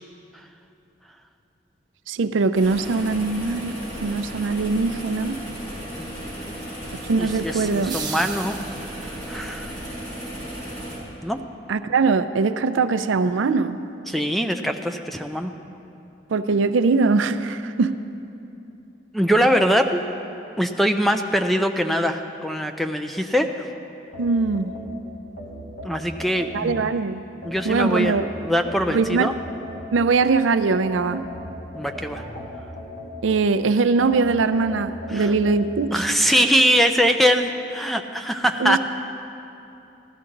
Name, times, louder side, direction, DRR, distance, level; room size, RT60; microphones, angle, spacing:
voice 1, 2.1-5.4 6.9-8.0 11.7-13.8 16.3-17.9 24.2-24.7 26.5-27.2 27.6-28.3 28.9-29.3 29.9-31.3 33.2-36.3 38.6-38.8, right 4 dB, 90° right, 11 dB, 0.5 m, -21 dB
sound 1, 2.5-11.0, right 1 dB, 20° left, 3.6 m, -35 dB
voice 2, 7.2-8.6 9.0-9.7 11.2-11.4 14.1-15.5 19.1-20.0 20.6-23.5 25.8-26.8 27.4-29.3 31.7-32.2 35.1-35.3 35.9-38.8, equal, ahead, 6 dB, 0.4 m, -22 dB
sound 2, 7.7-9.3, right 6 dB, 25° right, 1.0 m, -35 dB
sound 3, 24.1-26.9 27.4-30.2 30.7-33.5 34.0-35.6, equal, 50° left, 1.6 m, -38 dB
15.5 x 12.0 x 3.9 m, 2.8 s
head